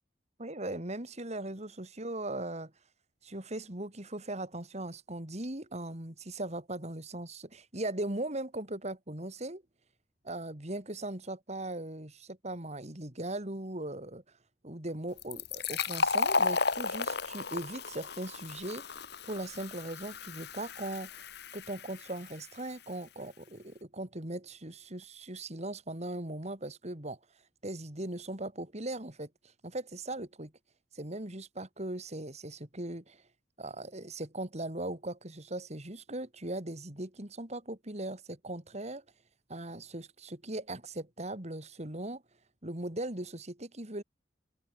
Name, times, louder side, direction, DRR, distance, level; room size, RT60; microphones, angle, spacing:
voice 1, 0.4-2.7 3.2-9.6 10.2-14.2 14.6-19.0 19.3-21.2 21.5-27.2 27.6-29.3 29.6-30.5 30.9-33.2 33.6-39.0 39.5-42.2 42.6-44.0, right 1 dB, 35° right, 3.1 m, -39 dB
Fill (with liquid), 15.2-22.6, left 4 dB, 65° left, 3.3 m, -34 dB
head